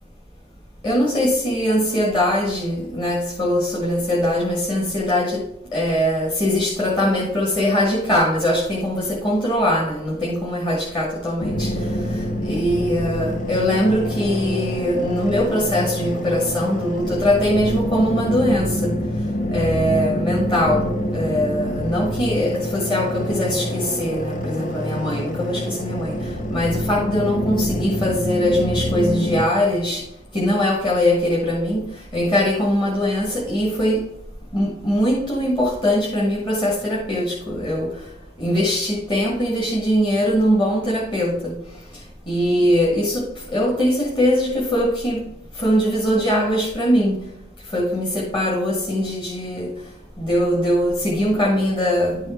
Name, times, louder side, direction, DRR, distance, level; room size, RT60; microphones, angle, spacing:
voice 1, 0.8-5.4 5.7-11.7 12.5-18.9 19.5-20.8 21.1-26.1 26.5-30.0 30.3-31.8 32.1-34.0 34.5-37.9 38.4-41.5 42.3-43.2 43.5-45.2 45.6-47.2 47.7-49.7 50.2-52.2, equal, 25° left, -4 dB, 1.6 m, -21 dB
sound 1, 11.4-29.4, equal, 45° left, 0.9 m, -26 dB
11.0 x 4.8 x 4.3 m, 0.82 s
head